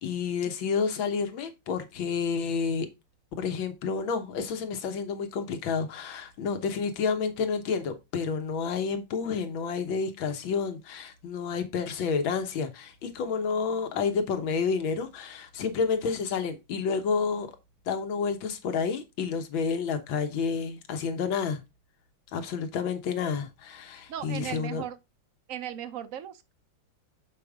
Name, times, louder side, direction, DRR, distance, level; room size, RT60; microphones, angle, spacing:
voice 1, 0.0-2.9 3.4-17.5 17.9-21.6 22.3-24.8, left 5 dB, 75° left, 1.9 m, -30 dB
voice 2, 24.1-25.0 25.5-26.5, right 10 dB, 70° right, 0.7 m, -37 dB
6.8 x 5.0 x 3.5 m
omnidirectional pair, 2.2 m